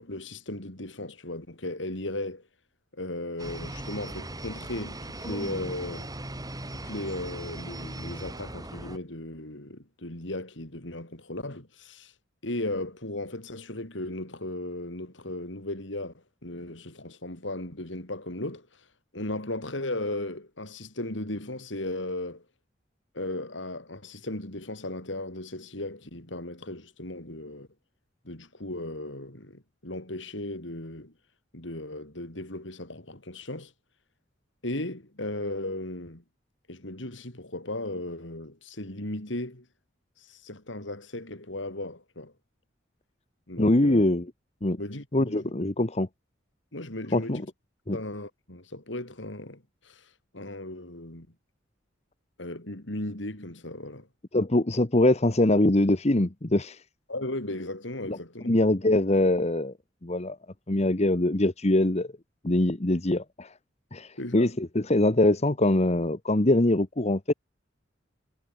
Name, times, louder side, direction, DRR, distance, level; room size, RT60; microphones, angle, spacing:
voice 1, 0.0-2.4 2.9-6.1 6.7-12.1 12.4-16.1 16.4-18.8 19.1-22.4 23.1-27.7 28.2-31.1 31.5-33.7 34.6-36.2 36.7-39.6 40.2-42.3 43.5-44.1 44.8-45.5 46.7-47.5 47.9-51.3 52.4-54.1 57.1-58.5 64.2-64.5, left 1 dB, 70° left, 4.5 m, -36 dB
sound 1, 3.4-9.0, right 1 dB, 20° right, 6.1 m, -38 dB
voice 2, 43.6-44.3 44.6-44.8 45.1-46.1 47.1-47.4 47.9-48.0 54.3-56.8 58.1-58.2 58.5-59.7 60.0-60.4 60.7-62.1 62.4-63.5 63.9-67.3, left 1 dB, 35° left, 1.3 m, -23 dB
head